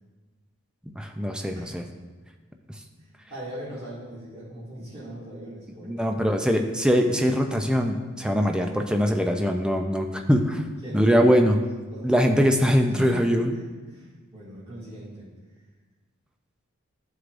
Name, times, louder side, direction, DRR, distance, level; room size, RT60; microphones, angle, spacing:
voice 1, 1.0-1.8 5.9-10.6 10.9-11.6 12.0-13.5, equal, 5° right, 4 dB, 0.4 m, -22 dB
voice 2, 1.5-1.8 3.0-6.3 10.8-11.2 11.9-12.2 12.9-15.3, right 1 dB, 25° right, -11 dB, 2.1 m, -40 dB
12.5 x 4.7 x 2.5 m, 1.3 s
head